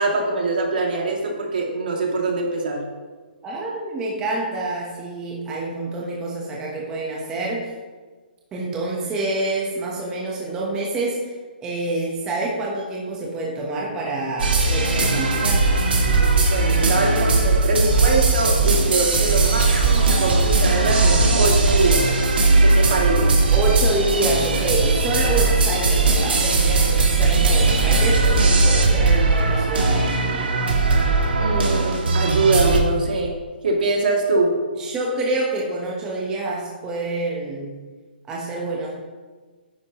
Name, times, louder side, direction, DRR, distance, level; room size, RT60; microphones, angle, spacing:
voice 1, 0.0-2.8 16.5-22.1 22.6-23.4 31.4-33.4 33.6-34.6, right 3 dB, 60° right, -1 dB, 2.6 m, -23 dB
voice 2, 3.4-7.7 8.5-15.7 23.5-30.5 34.8-37.8 38.3-38.9, right 2 dB, 10° right, -3 dB, 1.1 m, -27 dB
sound 1, 14.4-32.8, right 3 dB, 75° right, 2.4 m, -18 dB
10.5 x 9.6 x 3.1 m, 1.4 s
hypercardioid pair, 165°, 6 cm